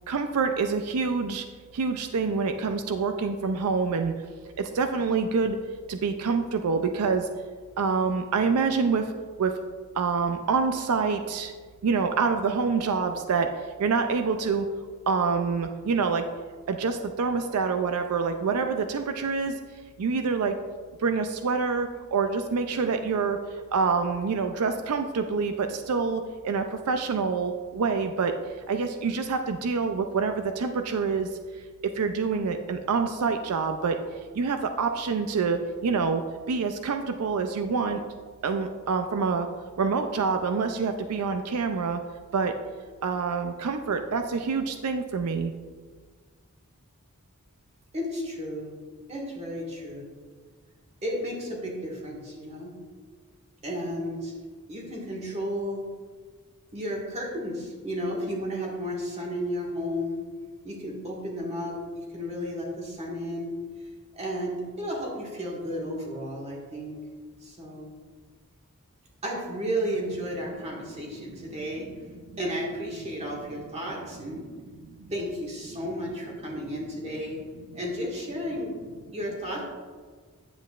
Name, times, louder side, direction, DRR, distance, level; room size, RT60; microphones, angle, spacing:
voice 1, 0.1-1.4 1.7-4.1 4.6-5.6 5.9-7.3 7.8-9.1 9.4-9.5 9.9-11.5 11.8-14.7 15.1-16.3 16.7-19.5 20.0-20.6 21.0-28.3 28.7-31.3 31.8-34.0 34.3-36.2 36.5-38.0 38.4-39.5 39.8-42.0 42.3-42.6 43.0-45.5 75.0-75.1, right 5 dB, 90° right, 7 dB, 0.4 m, -26 dB
voice 2, 47.9-48.7 49.1-50.1 51.0-52.7 53.6-54.3 54.7-55.9 56.7-60.2 60.6-63.5 64.1-67.0 67.4-67.9 69.2-71.9 72.4-74.4 75.1-77.4 77.7-78.7 79.1-79.7, equal, 30° right, -3 dB, 1.7 m, -33 dB
9.2 x 7.7 x 2.4 m, 1.5 s
head